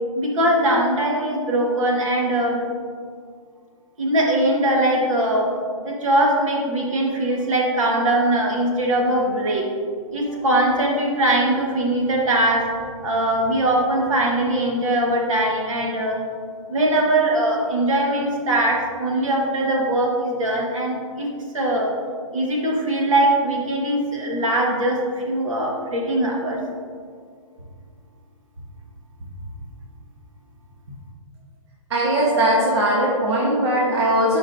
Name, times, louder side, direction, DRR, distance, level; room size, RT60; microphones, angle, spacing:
voice 1, 0.1-2.6 4.0-5.5 5.8-9.6 10.1-12.6 13.0-16.2 16.7-21.3 21.5-21.9 22.3-26.6, right 1 dB, 70° right, -1 dB, 1.7 m, -21 dB
voice 2, 31.9-34.4, right 1 dB, 50° right, -4 dB, 1.2 m, -19 dB
11.5 x 5.1 x 2.7 m, 2.1 s
hypercardioid pair, 165°, 18 cm